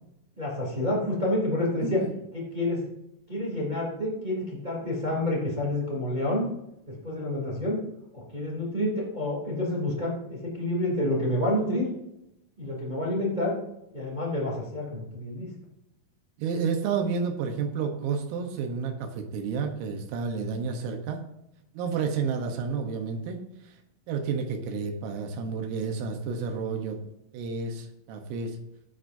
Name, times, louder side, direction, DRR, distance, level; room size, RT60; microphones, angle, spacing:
voice 1, 0.4-2.0 2.3-2.9 3.3-6.5 6.9-7.8 8.1-11.9 12.6-13.6 13.9-15.5, left 1 dB, 15° right, -4 dB, 1.8 m, -28 dB
voice 2, 16.4-21.2 21.8-23.4 24.1-27.0 27.3-28.6, right 5 dB, 85° right, 3 dB, 3.7 m, -30 dB
15.0 x 9.0 x 2.7 m, 0.84 s
omnidirectional pair, 5.8 m